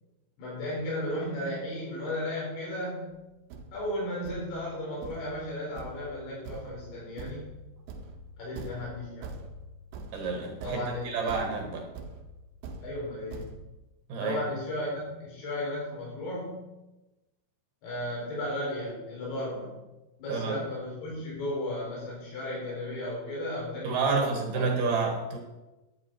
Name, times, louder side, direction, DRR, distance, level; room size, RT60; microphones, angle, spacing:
voice 1, 0.4-3.1 3.7-7.5 8.4-9.3 10.6-11.4 12.8-13.5 14.2-16.7 17.8-19.8 20.2-24.6, left 1 dB, 70° left, -6 dB, 6.2 m, -35 dB
Thump thud, 3.1-3.2 3.5-13.5, right 3 dB, 80° right, 3.0 m, -44 dB
voice 2, 10.1-11.9 14.1-14.4 20.3-20.6 23.8-25.4, right 4 dB, 60° right, 2 dB, 2.7 m, -29 dB
11.5 x 9.8 x 4.6 m, 1.0 s
omnidirectional pair, 4.9 m